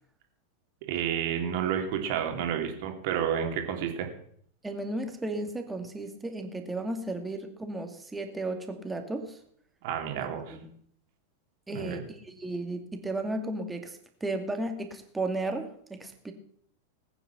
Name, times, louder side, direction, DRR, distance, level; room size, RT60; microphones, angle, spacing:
voice 1, 0.9-4.1 9.8-10.6 11.7-12.0, right 8 dB, 50° right, 4 dB, 2.9 m, -30 dB
voice 2, 4.6-9.4 10.2-10.7 11.7-16.3, right 2 dB, 10° right, 5 dB, 2.4 m, -34 dB
20.0 x 9.2 x 6.0 m, 0.64 s
figure-of-eight pair, 90°, 0 cm